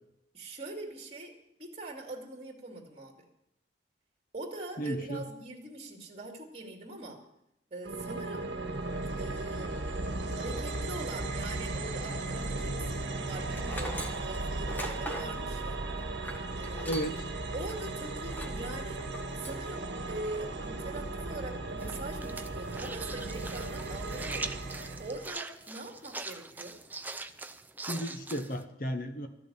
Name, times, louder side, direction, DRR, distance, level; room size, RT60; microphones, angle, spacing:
voice 1, 0.3-1.3 1.6-3.2 4.3-7.2 7.7-8.5 9.2-9.7 10.3-15.8 16.6-16.9 17.5-19.0 19.4-26.8, right 2 dB, 35° right, 1 dB, 2.5 m, -42 dB
voice 2, 4.8-5.2 16.8-17.2 27.9-29.3, equal, 50° left, 7 dB, 1.1 m, -34 dB
sound 1, 7.8-25.3, right 2 dB, 75° right, 1.3 m, -36 dB
Tools, 13.5-17.3 17.6-17.8 18.3-18.6 19.0-19.6, equal, 10° left, 1.4 m, -41 dB
sound 2, 21.8-28.6, right 3 dB, 10° right, 0.5 m, -42 dB
13.5 x 6.8 x 9.7 m, 0.80 s
head